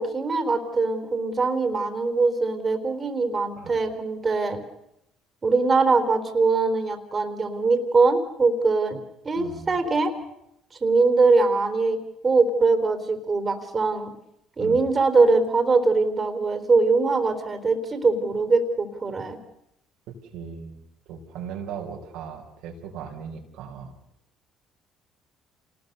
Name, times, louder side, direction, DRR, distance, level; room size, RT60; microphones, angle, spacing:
voice 1, 0.0-4.6 5.4-9.0 9.2-10.1 10.8-14.1 14.6-19.4, right 3 dB, 35° right, 7 dB, 3.8 m, -22 dB
voice 2, 9.4-9.8 14.6-14.9 20.1-20.8 21.1-23.9, right 6 dB, 75° right, 1 dB, 4.1 m, -38 dB
27.5 x 20.0 x 6.8 m, 0.81 s
supercardioid pair, 70°, 0 cm